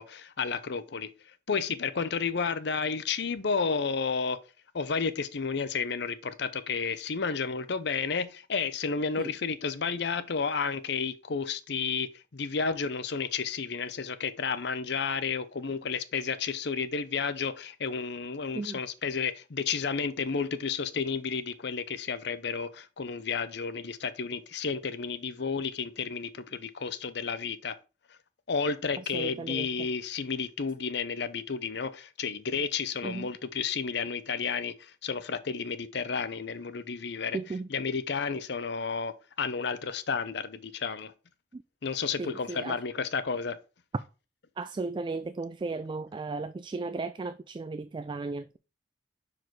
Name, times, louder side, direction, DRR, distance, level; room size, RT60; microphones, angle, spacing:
voice 1, 0.0-4.4 4.7-27.8 28.1-28.2 28.5-37.4 37.7-41.1 41.8-43.6, left 5 dB, 65° left, 0.7 m, -32 dB
voice 2, 29.1-29.7 33.0-33.3 37.3-37.7 41.5-41.6 42.2-42.8 44.6-48.6, right 3 dB, 25° right, 0.3 m, -35 dB
6.0 x 4.9 x 4.6 m
head